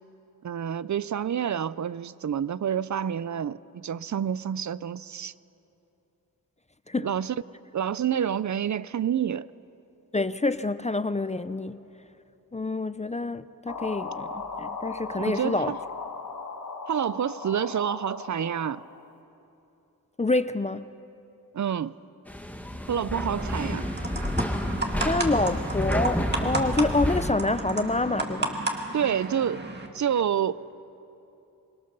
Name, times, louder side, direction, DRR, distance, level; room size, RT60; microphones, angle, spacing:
voice 1, 0.4-5.3 7.0-7.4 7.7-9.5 15.1-15.8 16.9-18.8 21.5-21.9 22.9-23.9 28.9-29.7 29.9-30.7, right 8 dB, 55° right, 0.5 m, -28 dB
voice 2, 10.1-11.9 12.5-15.7 20.2-20.9 25.0-28.6, left 2 dB, 20° left, 0.4 m, -27 dB
sound 1, 13.7-19.1, left 4 dB, 55° left, 1.5 m, -37 dB
sound 2, 22.3-27.3, left 1 dB, 5° left, 1.3 m, -29 dB
sound 3, 23.4-29.9, right 2 dB, 30° right, 2.0 m, -33 dB
24.5 x 21.5 x 6.7 m
wide cardioid pair, 135°, 36 cm